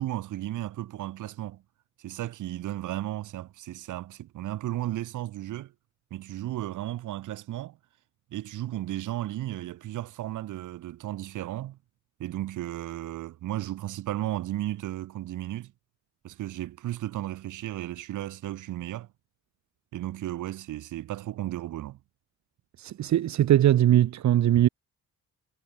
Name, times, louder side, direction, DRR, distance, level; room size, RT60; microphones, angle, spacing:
voice 1, 0.0-1.6 2.0-5.7 6.1-7.8 8.3-11.8 12.2-15.7 16.2-19.1 19.9-22.0, right 14 dB, 85° right, 3.7 m, -34 dB
voice 2, 22.8-24.7, right 12 dB, 65° right, 1.5 m, -21 dB
cardioid pair, 90°, 30 cm